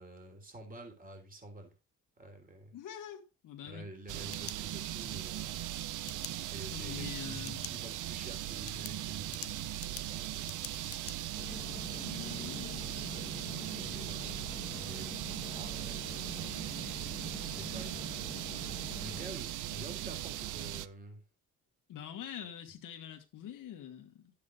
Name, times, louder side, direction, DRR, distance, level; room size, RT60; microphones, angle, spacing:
voice 1, 0.0-1.7 2.2-2.7 3.6-5.6 6.5-10.5 12.0-14.4 14.8-15.2 15.5-16.1 17.4-18.4 19.0-21.2, right 1 dB, 25° right, 3.4 m, -49 dB
voice 2, 2.7-3.8 6.7-7.6 11.9-12.8 21.9-24.3, left 10 dB, 70° left, 2.0 m, -45 dB
sound 1, 3.9-5.1 6.1-6.3 7.4-7.8 8.2-8.3 8.7-11.2, left 11 dB, 45° left, 0.5 m, -46 dB
sound 2, 4.1-20.9, right 13 dB, 65° right, 0.6 m, -39 dB
sound 3, 11.4-19.3, left 4 dB, 25° left, 1.1 m, -47 dB
10.5 x 8.6 x 2.5 m
cardioid pair, 80°, 33 cm